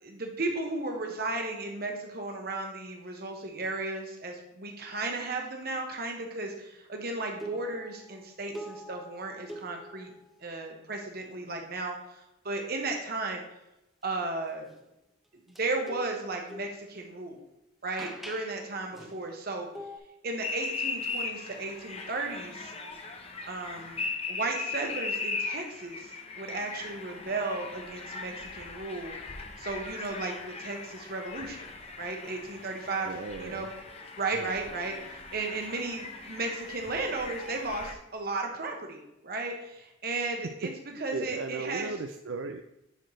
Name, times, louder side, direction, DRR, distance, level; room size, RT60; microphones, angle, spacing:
voice 1, 0.0-10.1 10.4-13.4 14.0-14.7 15.5-17.4 17.8-19.7 20.2-22.7 23.5-29.2 29.6-31.7 32.0-33.7 34.2-40.7 41.0-42.0, right 3 dB, 50° right, 2 dB, 1.2 m, -35 dB
sound 1, 7.3-8.2 8.5-10.3 15.6-17.3 18.0-18.6 18.9-19.3 19.7-20.0, equal, ahead, 0.7 m, -44 dB
sound 2, 20.4-37.9, left 4 dB, 30° left, 0.8 m, -39 dB
voice 2, 33.1-33.7 40.6-40.7 41.1-42.6, right 3 dB, 80° right, 6 dB, 0.4 m, -36 dB
10.5 x 4.5 x 3.2 m, 0.89 s
head